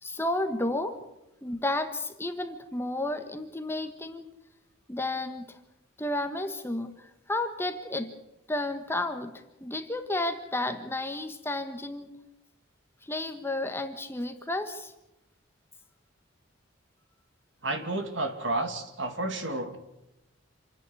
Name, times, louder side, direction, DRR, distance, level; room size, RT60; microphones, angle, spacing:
voice 1, 0.0-1.0 1.4-4.3 4.9-5.6 6.0-8.1 8.5-12.2 13.0-14.9, left 2 dB, 10° left, 7 dB, 1.3 m, -32 dB
voice 2, 17.6-19.8, right 2 dB, 65° right, 6 dB, 2.7 m, -31 dB
27.5 x 10.5 x 9.8 m, 0.93 s
head